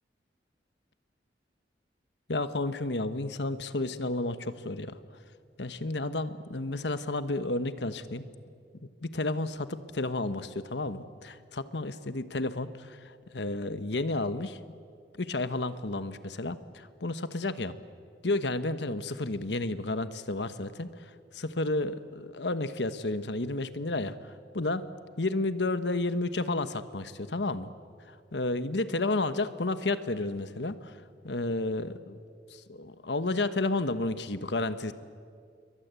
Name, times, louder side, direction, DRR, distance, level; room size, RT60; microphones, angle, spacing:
voice 1, 2.3-4.9 5.6-8.2 9.0-14.6 15.2-17.7 18.2-20.9 21.3-24.1 24.5-24.8 25.2-27.7 28.3-30.9 31.2-32.2 32.7-34.9, left 2 dB, 80° left, 12 dB, 1.3 m, -31 dB
29.0 x 23.0 x 8.3 m, 2.1 s
head